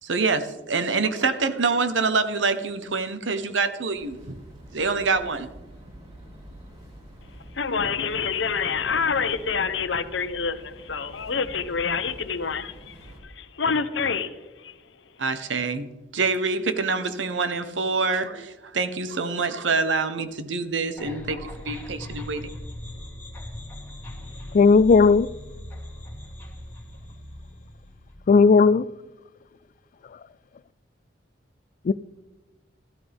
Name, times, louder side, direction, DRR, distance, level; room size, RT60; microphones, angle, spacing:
voice 1, 0.0-4.4 4.7-5.5 15.2-22.5, right 4 dB, 85° right, 1.0 m, -26 dB
sound 1, 3.9-13.2, right 1 dB, 35° right, 3.2 m, -46 dB
voice 2, 7.5-14.8, left 5 dB, 80° left, 0.9 m, -27 dB
sound 2, 21.0-28.1, left 1 dB, 15° left, 3.1 m, -39 dB
voice 3, 24.5-25.3 28.3-28.9 31.8-31.9, left 4 dB, 45° left, 0.3 m, -15 dB
14.0 x 12.5 x 3.5 m
head